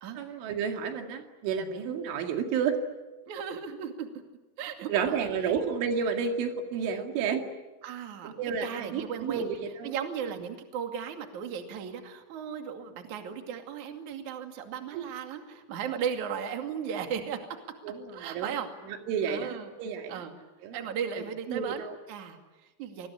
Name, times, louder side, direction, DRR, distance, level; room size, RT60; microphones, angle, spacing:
voice 1, 0.2-2.8 4.9-7.5 8.2-9.9 14.9-15.0 17.8-18.5 18.9-20.2 20.6-20.8 21.5-22.0, right 6 dB, 85° right, 5 dB, 4.7 m, -31 dB
voice 2, 3.3-4.1 4.6-5.5 7.8-8.3 8.6-9.5 9.8-17.5 18.1-18.7 19.3-19.7 20.1-20.3 20.7-23.1, right 7 dB, 45° right, 5 dB, 3.3 m, -36 dB
27.5 x 21.0 x 10.0 m, 1.1 s
omnidirectional pair, 5.4 m